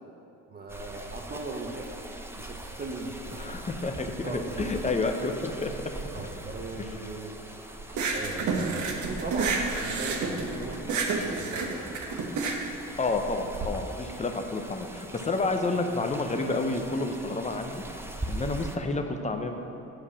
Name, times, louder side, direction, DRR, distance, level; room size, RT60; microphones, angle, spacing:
voice 1, 0.5-2.0 2.3-3.5 4.2-4.9 6.1-7.8 8.1-11.8, right 3 dB, 30° right, 2 dB, 0.9 m, -38 dB
sound 1, 0.7-18.8, right 1 dB, 10° right, 0.6 m, -42 dB
voice 2, 3.4-5.7 6.8-6.9 13.0-19.5, left 3 dB, 25° left, 5 dB, 0.8 m, -30 dB
sound 2, 7.9-13.7, right 4 dB, 75° right, 1.1 m, -30 dB
7.8 x 4.8 x 7.1 m, 2.9 s
cardioid pair, 90°, 30 cm